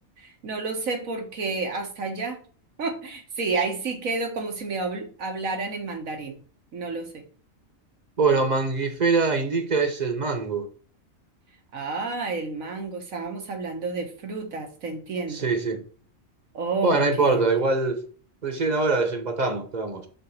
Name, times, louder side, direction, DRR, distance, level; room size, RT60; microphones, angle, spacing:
voice 1, 0.2-2.4 2.8-6.4 6.7-7.2 11.7-15.5 16.5-17.5, right 3 dB, 85° right, 1.8 m, -30 dB
voice 2, 8.2-10.7 15.3-15.8 16.8-18.0 18.4-20.1, right 3 dB, 35° right, 1.0 m, -23 dB
5.6 x 3.8 x 5.7 m
omnidirectional pair, 1.4 m